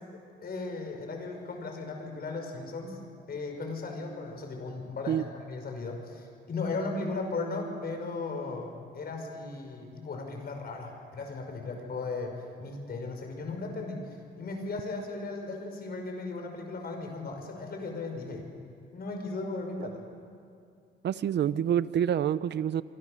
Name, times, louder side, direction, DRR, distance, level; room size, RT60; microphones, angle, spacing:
voice 1, 0.4-3.0 3.3-8.7 8.9-12.3 12.6-14.0 14.4-18.4 18.9-20.0, left 3 dB, 50° left, 3 dB, 5.7 m, -36 dB
voice 2, 21.0-22.8, right 9 dB, 60° right, 16 dB, 0.8 m, -27 dB
26.0 x 24.5 x 6.7 m, 2.4 s
cardioid pair, 90°, 20 cm